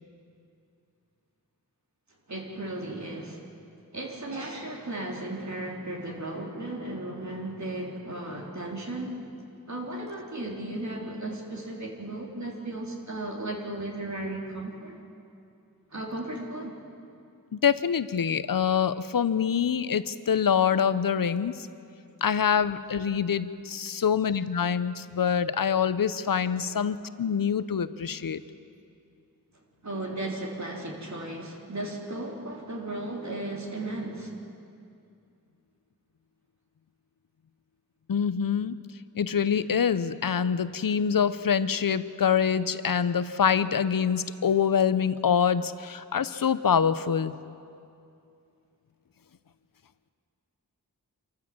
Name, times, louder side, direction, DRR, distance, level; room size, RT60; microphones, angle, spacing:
voice 1, 2.3-3.4 3.9-9.2 9.7-15.0 15.9-16.7 29.8-34.3, right 1 dB, 50° right, -1 dB, 3.5 m, -35 dB
voice 2, 17.5-21.7 22.2-28.4 38.1-38.8 39.1-47.3, left 7 dB, 70° left, 14 dB, 0.7 m, -25 dB
27.0 x 14.0 x 7.3 m, 2.5 s
wide cardioid pair, 75°, 35 cm